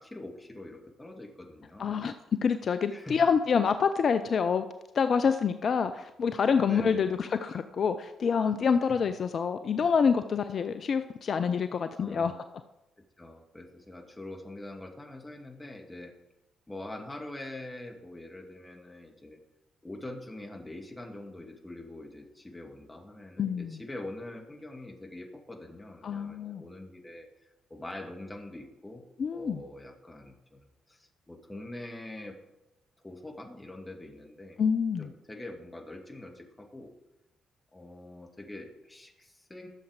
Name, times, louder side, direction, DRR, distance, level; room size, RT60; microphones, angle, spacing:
voice 1, 0.0-2.0 2.9-3.2 6.6-7.2 8.8-9.0 12.0-12.4 13.0-16.1 16.7-19.4 19.8-27.3 27.7-29.0 29.3-32.4 33.0-34.6 35.0-36.9 37.7-39.7, left 1 dB, 15° left, 3 dB, 2.1 m, -44 dB
voice 2, 1.8-2.1 2.4-4.7 4.9-12.3 23.4-23.8 26.0-26.6 29.2-29.6 34.6-35.1, left 6 dB, 50° left, 10 dB, 0.5 m, -27 dB
13.0 x 7.1 x 5.0 m, 0.96 s
figure-of-eight pair, 40°, 0 cm